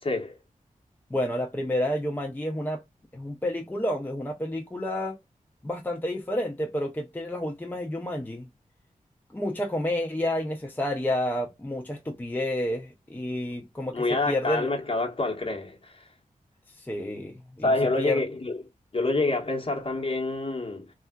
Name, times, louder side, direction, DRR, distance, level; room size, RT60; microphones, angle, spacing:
voice 1, 0.0-0.4 13.9-16.1 17.6-18.6 18.9-20.9, left 2 dB, 40° left, 1.1 m, -27 dB
voice 2, 1.1-2.8 3.1-5.2 5.6-8.5 9.3-14.7 16.8-18.2, left 1 dB, 15° left, 0.5 m, -30 dB
3.5 x 2.4 x 2.3 m
wide cardioid pair, 75°, 14 cm